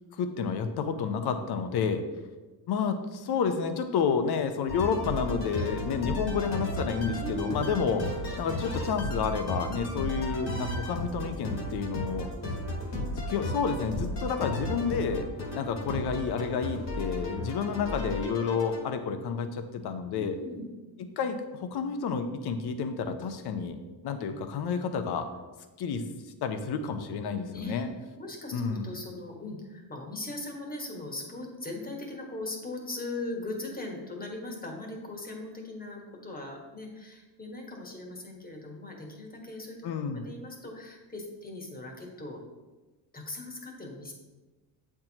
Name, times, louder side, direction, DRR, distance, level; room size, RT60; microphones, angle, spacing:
voice 1, 0.1-2.0 2.7-8.0 8.4-12.3 13.3-15.2 15.5-20.4 21.0-23.8 24.0-25.3 25.8-26.0 26.4-27.9 28.5-29.0 39.8-40.3, left 6 dB, 55° left, 8 dB, 0.8 m, -30 dB
sound 1, 4.7-18.8, left 1 dB, 35° left, 1.5 m, -34 dB
voice 2, 7.2-7.6 15.1-15.3 20.1-20.6 27.5-27.8 28.2-39.8 40.1-42.4 43.1-44.1, left 2 dB, 20° left, 1 dB, 1.4 m, -39 dB
7.3 x 4.6 x 2.9 m, 1.2 s
supercardioid pair, 90°, 47 cm